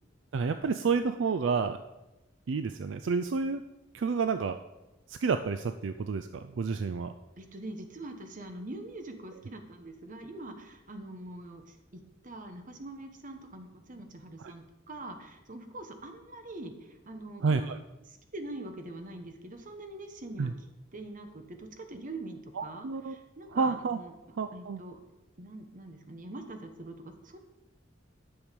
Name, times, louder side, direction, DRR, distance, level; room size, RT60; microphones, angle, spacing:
voice 1, 0.3-1.8 2.5-3.6 3.9-4.6 5.1-7.1 14.4-14.5 17.4-17.8 20.4-20.5 22.6-23.2 23.5-24.0 24.4-24.8, right 5 dB, 70° right, 9 dB, 0.4 m, -30 dB
voice 2, 7.4-17.7 18.1-20.6 20.9-24.1 24.5-25.0 25.4-27.4, right 2 dB, 45° right, 6 dB, 1.1 m, -44 dB
10.0 x 6.4 x 5.2 m, 1.0 s
head